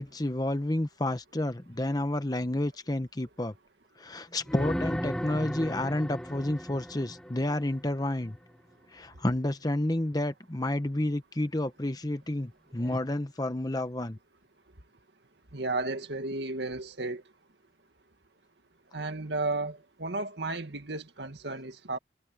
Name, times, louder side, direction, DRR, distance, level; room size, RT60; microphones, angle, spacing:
voice 1, 0.0-3.5 4.0-8.4 8.9-14.2, left 1 dB, 20° left, 1.0 m, -30 dB
sound 1, 4.5-8.3 12.8-13.0, equal, 5° left, 1.5 m, -36 dB
voice 2, 15.5-17.2 18.9-22.0, right 2 dB, 70° right, 2.1 m, -33 dB
head